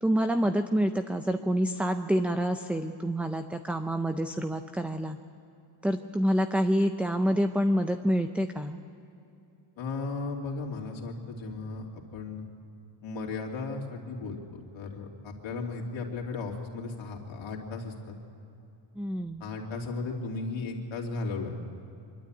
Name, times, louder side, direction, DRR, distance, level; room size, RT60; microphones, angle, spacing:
voice 1, 0.0-5.2 5.8-8.8 19.0-19.4, equal, 5° right, 8 dB, 0.4 m, -27 dB
voice 2, 9.8-12.5 13.0-18.2 19.4-21.5, left 3 dB, 75° left, 0 dB, 2.9 m, -36 dB
24.5 x 12.5 x 8.8 m, 2.7 s
cardioid pair, 125°, 47 cm